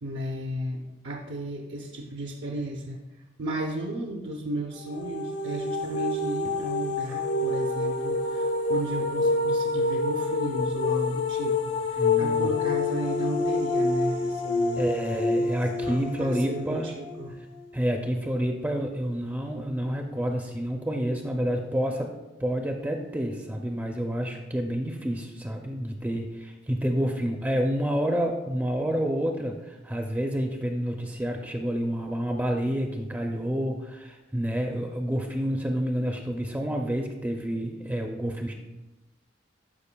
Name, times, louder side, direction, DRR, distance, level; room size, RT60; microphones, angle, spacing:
voice 1, 0.0-3.0 3.4-14.8 15.8-17.4, right 1 dB, 75° right, 1 dB, 0.6 m, -34 dB
sound 1, 4.8-17.6, left 3 dB, 85° left, 0.9 m, -27 dB
voice 2, 12.0-12.5 14.8-16.9 17.7-22.1 22.4-38.5, equal, 10° right, 3 dB, 0.4 m, -29 dB
12.0 x 5.1 x 2.2 m, 1.1 s
head